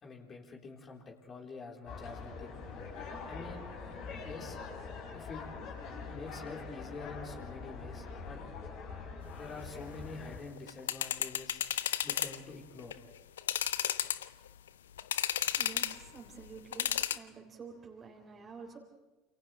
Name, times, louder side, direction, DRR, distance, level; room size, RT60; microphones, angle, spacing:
voice 1, 0.0-2.6 3.2-3.7 4.2-4.6 5.1-5.4 6.1-8.4 9.4-11.6 12.0-13.0, left 3 dB, 35° left, -1 dB, 4.3 m, -46 dB
sound 1, 1.8-10.4, left 4 dB, 60° left, 6.8 m, -44 dB
sound 2, 10.6-12.4 12.8-12.9 13.4-14.5 15.0-16.0 16.7-17.2, left 10 dB, 75° left, 0.6 m, -32 dB
voice 2, 15.4-18.8, right 5 dB, 30° right, 0 dB, 3.7 m, -49 dB
29.0 x 28.0 x 3.4 m, 1.1 s
figure-of-eight pair, 70°, 0 cm